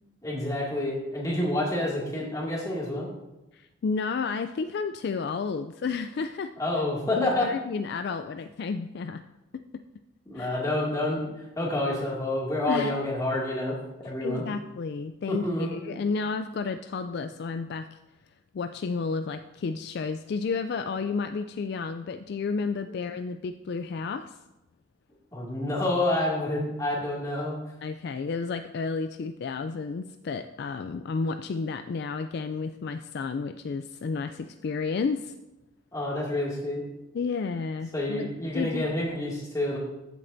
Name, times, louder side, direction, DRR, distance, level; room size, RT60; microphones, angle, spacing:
voice 1, 0.2-3.1 6.6-7.5 10.3-11.2 11.6-13.8 14.0-14.4 15.3-15.7 25.3-27.6 35.9-36.8 37.9-39.8, left 1 dB, 15° left, -5 dB, 2.2 m, -28 dB
voice 2, 3.5-6.5 7.2-9.2 10.3-10.6 12.7-12.9 14.2-18.0 18.5-24.4 27.8-35.3 37.1-38.8, left 4 dB, 55° left, 9 dB, 0.3 m, -31 dB
14.5 x 7.5 x 2.6 m, 0.99 s
head